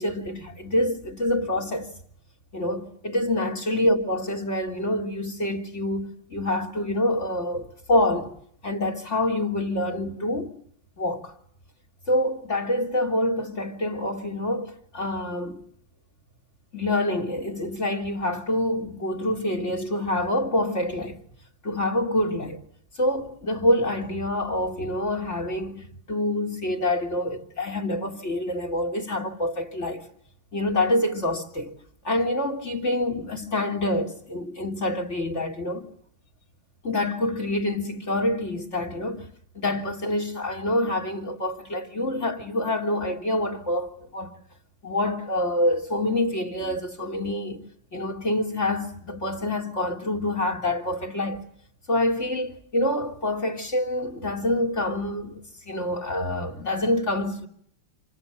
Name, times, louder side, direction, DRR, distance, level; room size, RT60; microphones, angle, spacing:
voice 1, 0.0-1.9 2.5-8.3 8.6-10.6 11.0-11.3 12.1-15.6 16.7-21.2 21.6-22.6 23.0-30.1 30.5-31.8 32.0-35.9 36.8-39.3 39.5-44.4 44.8-47.6 47.9-51.4 51.9-57.5, left 1 dB, 30° left, 3.6 m, -26 dB
28.5 x 25.5 x 7.5 m
omnidirectional pair, 2.4 m